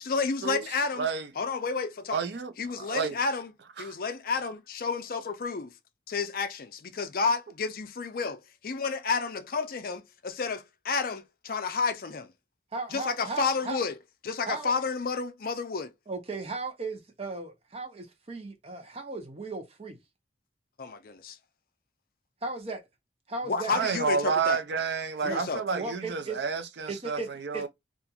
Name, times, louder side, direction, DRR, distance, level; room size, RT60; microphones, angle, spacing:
voice 1, 0.0-1.1 1.4-2.2 2.6-3.5 3.8-5.7 6.1-12.3 12.9-13.9 14.2-15.9 20.8-21.4 23.5-24.6 25.2-25.6, left 4 dB, 50° left, 0.4 m, -31 dB
voice 2, 1.0-1.3 2.1-3.2 3.8-3.9 23.7-27.7, right 5 dB, 65° right, 0.5 m, -30 dB
voice 3, 12.7-13.8 14.5-14.7 16.1-20.0 22.4-22.8 23.3-23.7 25.2-25.4 25.7-26.4 26.9-27.3 27.5-27.7, right 3 dB, 30° right, 0.7 m, -36 dB
2.8 x 2.4 x 2.3 m
head